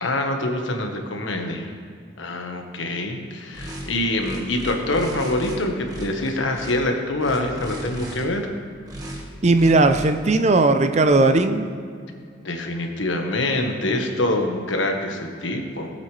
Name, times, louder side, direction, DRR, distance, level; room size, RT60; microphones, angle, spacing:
voice 1, 0.0-1.7 2.2-8.5 12.4-15.9, left 1 dB, 80° left, 3 dB, 1.3 m, -25 dB
sound 1, 3.5-3.9 4.2-5.6 5.9-6.7 7.2-8.2 8.9-9.2 9.5-10.1, equal, 20° right, 1.5 m, -35 dB
voice 2, 9.4-11.6, right 2 dB, 35° right, 8 dB, 0.5 m, -17 dB
18.0 x 8.1 x 3.3 m, 2.2 s
head